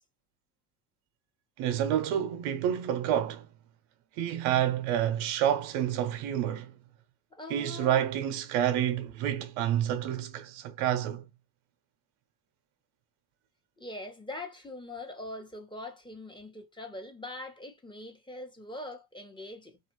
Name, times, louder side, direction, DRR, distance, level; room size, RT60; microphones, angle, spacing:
voice 1, 1.6-3.5 4.2-6.7 7.5-11.2, right 10 dB, 80° right, 0.7 m, -28 dB
voice 2, 7.3-8.0 13.8-19.8, left 1 dB, 10° left, 0.9 m, -42 dB
3.0 x 2.4 x 2.9 m
cardioid pair, 100°, 50 cm